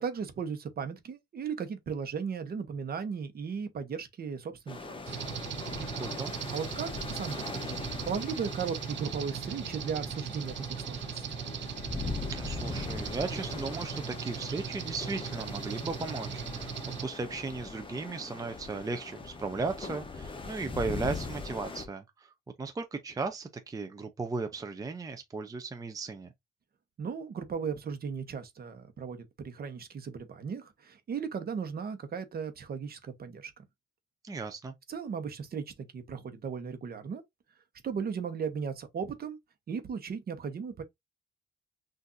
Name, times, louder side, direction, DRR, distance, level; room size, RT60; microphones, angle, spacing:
voice 1, 0.0-5.3 5.7-6.0 6.5-11.2 27.0-33.5 34.9-37.2 37.8-39.4 39.7-40.8, right 6 dB, 50° right, 1.0 m, -36 dB
sound 1, 4.7-21.9, left 3 dB, 25° left, 0.9 m, -40 dB
sound 2, 5.1-17.0, right 9 dB, 70° right, 0.7 m, -39 dB
voice 2, 5.8-6.3 12.3-16.7 17.0-22.3 22.6-26.3 34.2-34.7, right 4 dB, 20° right, 0.5 m, -36 dB
6.1 x 2.6 x 2.6 m
cardioid pair, 105°, 20 cm